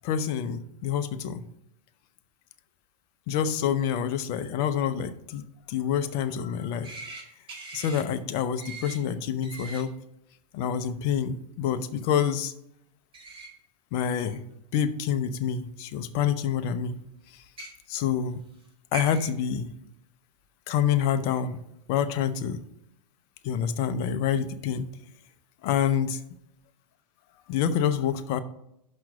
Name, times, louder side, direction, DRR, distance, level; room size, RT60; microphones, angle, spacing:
voice 1, 0.0-1.4 3.3-6.9 7.7-9.9 10.5-12.5 13.9-14.4 14.7-17.0 17.9-18.4 18.9-19.7 20.7-21.6 21.9-22.6 23.4-24.9 25.6-26.2 27.5-28.4, left 8 dB, 45° left, 10 dB, 0.7 m, -27 dB
sound 1, 6.8-7.2 7.5-8.0 8.6-9.0 9.4-9.8 13.1-13.5 14.3-14.4 15.6-15.7 17.4-17.7 18.6-18.7 18.9-19.3, right 3 dB, 25° right, 2.0 m, -40 dB
5.8 x 5.4 x 6.3 m, 0.80 s
hypercardioid pair, 105°, 21 cm